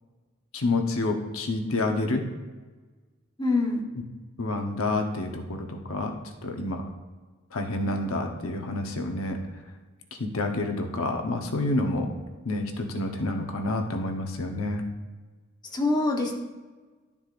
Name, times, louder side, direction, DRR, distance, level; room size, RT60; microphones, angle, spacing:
voice 1, 0.5-2.2 4.4-6.1 6.4-6.8 7.5-9.4 10.2-12.1 12.4-14.8, left 2 dB, 90° left, 3 dB, 0.9 m, -28 dB
voice 2, 3.4-3.8 15.7-16.3, left 2 dB, 20° left, -1 dB, 1.1 m, -24 dB
11.0 x 7.1 x 2.5 m, 1.3 s
head